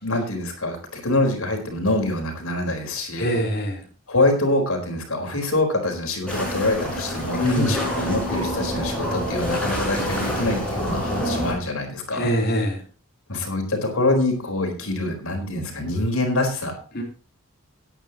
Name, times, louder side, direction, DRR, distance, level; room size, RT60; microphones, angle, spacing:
voice 1, 0.0-3.3 4.1-12.3 13.3-17.0, left 2 dB, 85° left, 3 dB, 4.3 m, -25 dB
voice 2, 3.2-3.8 7.3-7.7 12.1-12.8 16.9-17.0, equal, 50° left, -1 dB, 3.3 m, -23 dB
sound 1, 6.3-11.5, equal, 5° left, 6.3 m, -27 dB
17.0 x 10.0 x 3.0 m, 0.38 s
head